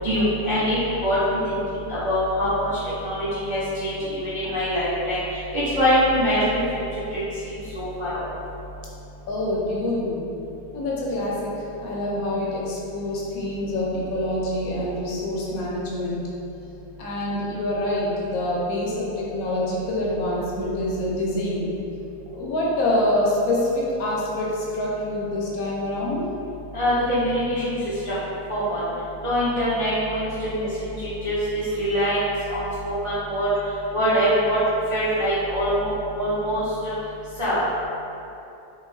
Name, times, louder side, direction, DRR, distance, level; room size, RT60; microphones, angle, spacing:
voice 1, 0.0-1.6 1.9-2.5 3.0-5.2 5.5-6.8 7.1-7.2 7.7-8.3 26.7-27.7 28.1-28.2 28.5-28.8 29.2-32.2 32.5-33.5 33.9-34.6 34.9-35.9 36.2-36.9 37.4-37.6, equal, 50° right, -14 dB, 0.3 m, -23 dB
voice 2, 9.3-10.2 10.7-11.5 11.8-16.2 17.0-21.6 22.3-26.2, left 1 dB, 75° left, -5 dB, 1.0 m, -26 dB
2.7 x 2.4 x 3.1 m, 2.8 s
omnidirectional pair, 1.6 m